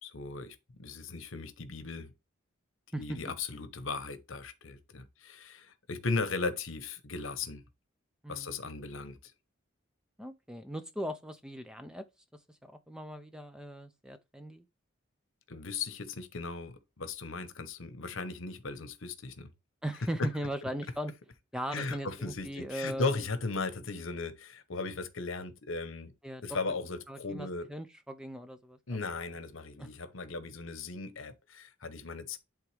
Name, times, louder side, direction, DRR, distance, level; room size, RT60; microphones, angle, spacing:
voice 1, 0.0-2.1 3.0-7.6 8.3-9.3 15.5-19.5 20.2-20.3 20.6-20.7 21.7-26.1 26.4-27.7 28.9-32.4, left 3 dB, 75° left, 1.0 m, -37 dB
voice 2, 8.2-8.6 10.2-12.0 12.5-14.6 19.8-21.1 21.5-23.2 26.2-26.4 27.1-29.0 29.8-29.9, right 1 dB, 5° right, 0.5 m, -39 dB
11.0 x 3.6 x 3.3 m
head